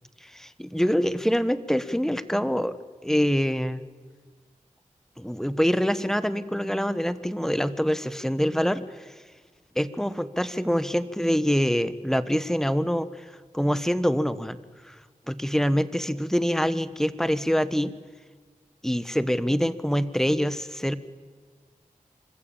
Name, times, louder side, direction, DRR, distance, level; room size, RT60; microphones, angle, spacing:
voice 1, 0.2-2.8 3.0-3.8 5.2-9.1 9.7-13.2 13.5-14.6 14.8-15.0 15.3-17.9 18.8-21.0, equal, 5° left, 15 dB, 1.3 m, -25 dB
26.0 x 14.5 x 8.9 m, 1.5 s
cardioid pair, 40°, 14 cm